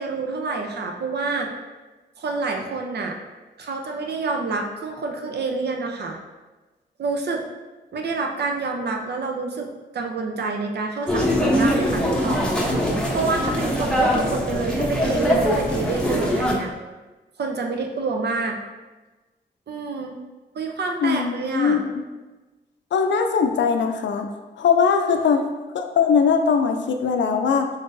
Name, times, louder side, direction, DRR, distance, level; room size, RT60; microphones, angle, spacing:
voice 1, 0.0-1.5 2.2-3.2 3.6-6.2 7.0-7.4 7.9-9.7 9.9-12.5 13.1-16.7 17.4-18.6 19.7-20.1 20.5-21.8, right 3 dB, 60° right, 2 dB, 0.6 m, -27 dB
sound 1, 11.1-16.5, equal, 5° left, 0.9 m, -22 dB
voice 2, 21.0-22.0 22.9-24.3 24.6-25.4 25.7-27.7, left 6 dB, 75° left, 5 dB, 0.5 m, -20 dB
3.9 x 3.7 x 2.6 m, 1.2 s
cardioid pair, 65°, 19 cm